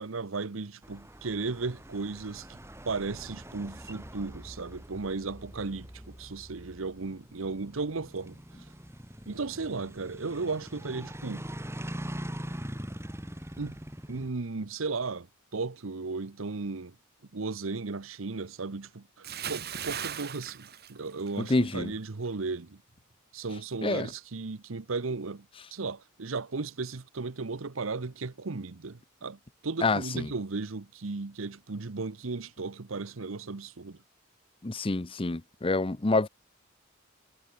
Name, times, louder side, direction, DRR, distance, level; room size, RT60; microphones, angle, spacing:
voice 1, 0.0-2.6 2.8-8.4 9.3-11.5 13.6-13.8 14.1-15.3 15.5-16.9 17.3-22.8 23.3-25.5 25.7-34.0, right 3 dB, 80° right, 0.9 m, -35 dB
sound 1, 0.8-14.3, equal, 15° right, 3.8 m, -43 dB
Bathtub (filling or washing) / Splash splatter, 19.2-21.7 22.0-22.3, right 8 dB, 50° right, 4.8 m, -38 dB
voice 2, 21.4-21.9 23.8-24.1 29.8-30.3 34.6-36.3, left 2 dB, 25° left, 0.7 m, -27 dB
head